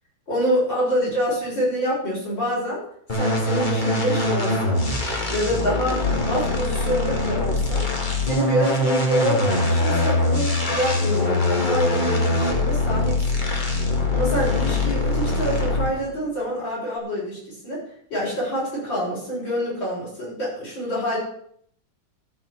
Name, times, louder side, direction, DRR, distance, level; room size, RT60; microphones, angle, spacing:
voice 1, 0.3-2.8 3.2-4.8 5.3-7.9 8.2-13.4 14.1-17.8 18.1-21.2, equal, 70° left, -6 dB, 7.3 m, -26 dB
sound 1, 3.1-16.1, left 2 dB, 25° left, 2.1 m, -23 dB
13.0 x 5.7 x 8.1 m, 0.66 s
omnidirectional pair, 2.1 m